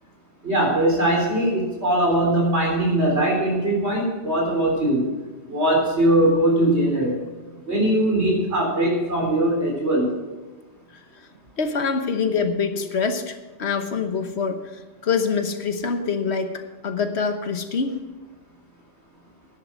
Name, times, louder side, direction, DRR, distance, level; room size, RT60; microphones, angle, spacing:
voice 1, 0.4-5.1 5.5-7.2 7.7-10.1, right 1 dB, 75° right, -1 dB, 4.3 m, -21 dB
voice 2, 11.6-14.6 15.0-17.9, left 5 dB, 70° left, 7 dB, 1.4 m, -25 dB
11.5 x 10.5 x 6.2 m, 1.3 s
omnidirectional pair, 1.1 m